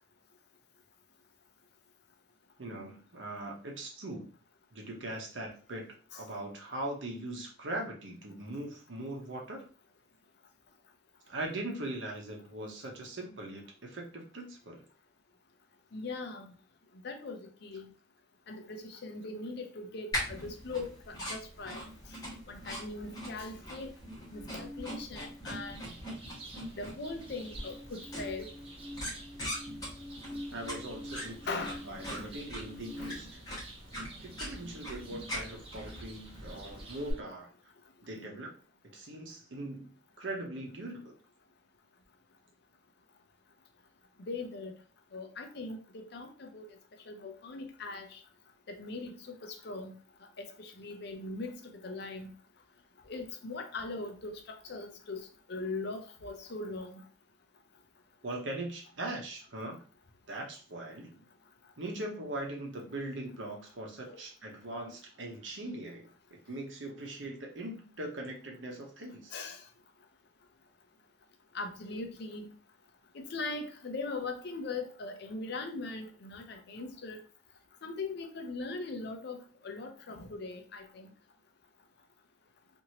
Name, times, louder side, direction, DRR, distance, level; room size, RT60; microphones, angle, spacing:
voice 1, 2.6-4.3 4.7-5.9 6.2-9.7 11.3-14.8 30.5-33.4 34.2-37.5 38.0-38.5 38.9-39.9 40.2-41.1 58.2-59.8 60.3-61.2 61.8-69.4, right 1 dB, 70° right, 0 dB, 0.8 m, -40 dB
voice 2, 15.9-16.5 17.0-17.9 18.5-21.8 22.5-23.9 24.3-25.8 26.8-28.5 31.5-31.8 32.2-32.3 44.3-44.7 45.1-45.8 46.1-46.7 47.1-48.2 48.7-49.9 50.4-52.3 53.1-54.4 54.6-55.2 55.5-57.0 64.0-64.2 69.3-69.6 71.5-72.5 73.1-77.2 77.8-81.1, left 3 dB, 55° left, 5 dB, 0.5 m, -40 dB
sound 1, 20.1-37.1, equal, 20° left, 1.0 m, -42 dB
sound 2, 24.3-26.4 26.7-33.2, left 1 dB, 10° right, 1.3 m, -47 dB
sound 3, 25.7-37.2, right 2 dB, 30° right, 0.5 m, -52 dB
2.9 x 2.6 x 2.9 m, 0.38 s
head